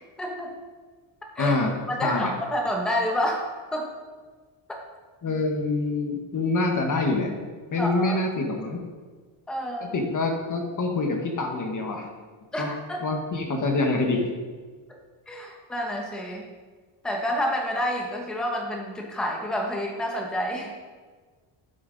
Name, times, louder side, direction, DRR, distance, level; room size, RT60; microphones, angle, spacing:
voice 1, 0.2-0.5 1.3-1.5 1.9-3.9 7.8-8.2 9.5-10.0 12.5-13.0 15.3-16.5 17.0-20.7, equal, ahead, 0 dB, 0.9 m, -29 dB
voice 2, 1.4-2.3 5.2-7.3 7.7-8.8 9.9-12.1 12.6-12.7 13.0-14.3, left 2 dB, 40° left, 3 dB, 1.2 m, -26 dB
8.6 x 8.1 x 3.9 m, 1.5 s
cardioid pair, 145°, 50 cm